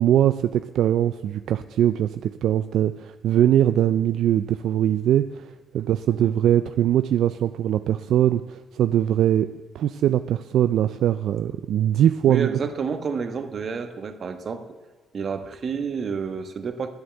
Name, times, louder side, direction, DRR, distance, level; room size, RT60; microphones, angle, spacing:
voice 1, 0.0-12.5, right 11 dB, 75° right, 11 dB, 0.4 m, -21 dB
voice 2, 12.3-14.6 15.1-16.9, right 6 dB, 50° right, 8 dB, 1.2 m, -29 dB
10.5 x 9.8 x 7.9 m, 1.3 s
cardioid pair, 90°, 0 cm